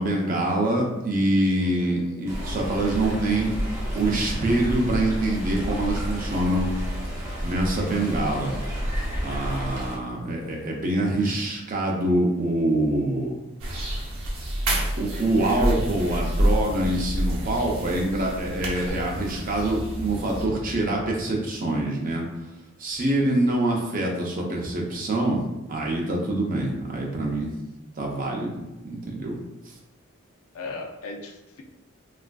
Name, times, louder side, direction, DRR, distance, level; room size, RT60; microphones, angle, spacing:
voice 1, 0.0-3.5 3.9-6.7 7.4-8.5 9.2-13.4 15.0-22.3 22.8-25.4 25.7-27.5 28.0-29.4, right 1 dB, 35° right, -1 dB, 0.5 m, -25 dB
voice 2, 1.6-2.4 30.5-31.6, left 3 dB, 75° left, 3 dB, 0.4 m, -38 dB
Stream, 2.3-10.0, equal, 15° right, 0.8 m, -30 dB
sound 1, 13.6-20.4, right 1 dB, 70° right, 0.7 m, -28 dB
sound 2, 15.6-20.8, equal, 10° left, 0.6 m, -39 dB
3.3 x 2.4 x 2.2 m, 0.97 s
head